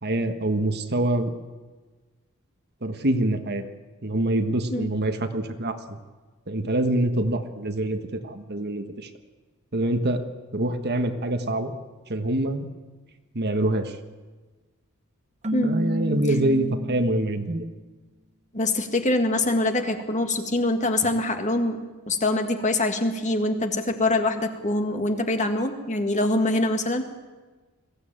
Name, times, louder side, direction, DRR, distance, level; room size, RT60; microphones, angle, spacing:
voice 1, 0.0-1.3 2.8-3.6 4.0-6.0 6.5-9.1 9.7-10.2 10.5-11.7 12.1-12.6 13.3-14.0 15.6-17.7, right 1 dB, 45° right, 7 dB, 1.4 m, -25 dB
Keyboard (musical), 15.4-17.4, equal, 30° right, 1.0 m, -29 dB
voice 2, 18.5-21.8 22.1-27.1, left 2 dB, 35° left, 5 dB, 1.9 m, -24 dB
21.5 x 15.5 x 8.9 m, 1.3 s
head